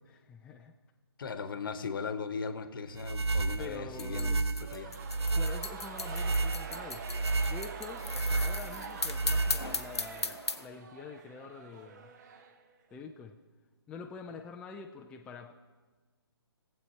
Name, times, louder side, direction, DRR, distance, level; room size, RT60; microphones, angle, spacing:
voice 1, 0.0-0.7 3.6-4.4 5.4-7.0 7.4-12.1 12.9-13.4 13.9-15.5, left 5 dB, 5° left, 2 dB, 0.4 m, -46 dB
voice 2, 1.2-4.9, left 5 dB, 55° left, 10 dB, 1.1 m, -38 dB
sound 1, 3.0-10.0, right 3 dB, 80° right, 0.7 m, -32 dB
sound 2, 4.0-10.7, left 3 dB, 90° left, 0.8 m, -37 dB
sound 3, 4.5-13.0, right 5 dB, 40° right, 1.1 m, -46 dB
19.0 x 7.9 x 4.4 m, 1.3 s
figure-of-eight pair, 140°, 14 cm